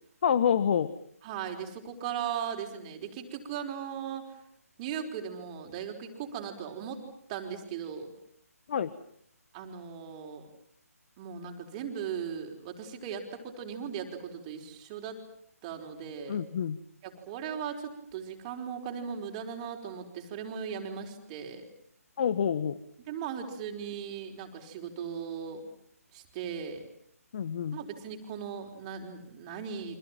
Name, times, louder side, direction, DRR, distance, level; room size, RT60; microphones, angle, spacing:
voice 1, 0.2-0.9 8.7-8.9 16.3-16.8 22.2-22.8 27.3-27.8, left 8 dB, 40° left, 14 dB, 1.3 m, -27 dB
voice 2, 1.2-4.4 4.8-7.0 7.3-8.1 9.5-10.5 11.2-15.2 15.6-16.4 17.0-21.6 23.0-25.7 26.1-26.8 27.7-30.0, right 7 dB, 25° right, 3 dB, 4.8 m, -38 dB
30.0 x 26.0 x 7.6 m, 0.67 s
figure-of-eight pair, 145°, 8 cm